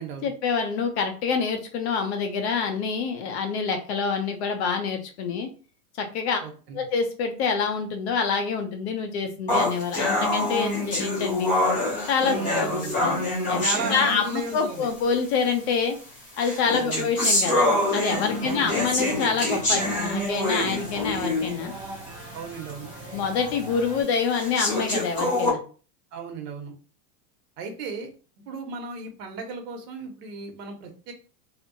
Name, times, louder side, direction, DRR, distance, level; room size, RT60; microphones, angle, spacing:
voice 1, 0.2-5.5 5.9-6.4 6.7-11.5 12.1-12.4 12.8-13.2 13.5-13.6 13.9-16.0 16.4-21.7 23.1-25.6, left 5 dB, 45° left, 6 dB, 0.5 m, -26 dB
voice 2, 6.4-6.8 12.3-13.0 13.6-14.9 16.8-17.1 18.4-18.7 22.3-22.9 26.1-26.7 27.6-28.1 28.5-31.1, right 4 dB, 70° right, 4 dB, 1.0 m, -35 dB
sound 1, 9.5-14.6 15.5-15.6 16.4-21.6 22.1-22.2 22.7-22.8 23.5-23.6 24.3-25.5, left 1 dB, 15° left, 0.9 m, -25 dB
sound 2, 18.1-24.0, right 1 dB, 10° right, 0.7 m, -40 dB
2.7 x 2.5 x 2.6 m, 0.38 s
supercardioid pair, 155°, 49 cm